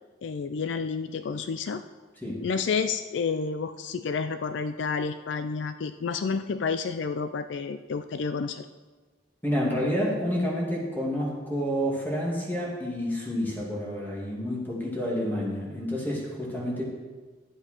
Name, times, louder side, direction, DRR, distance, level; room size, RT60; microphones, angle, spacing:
voice 1, 0.2-1.8 2.4-8.6, left 5 dB, 65° left, 10 dB, 0.4 m, -30 dB
voice 2, 9.4-16.8, equal, 10° left, -4 dB, 2.4 m, -29 dB
11.0 x 7.9 x 4.5 m, 1.4 s
head